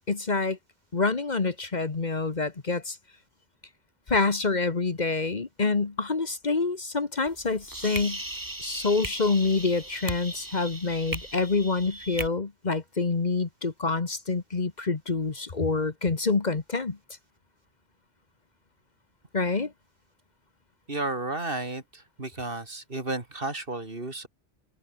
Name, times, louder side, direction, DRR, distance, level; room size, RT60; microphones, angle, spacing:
voice 1, 0.1-0.6 0.9-3.0 4.1-8.2 8.6-17.0 19.3-19.7, left 3 dB, 45° left, 1.4 m, -27 dB
sound 1, 7.3-12.3, right 1 dB, 20° right, 2.0 m, -37 dB
voice 2, 20.9-24.3, right 2 dB, 60° right, 3.4 m, -33 dB
open air
omnidirectional pair, 1.1 m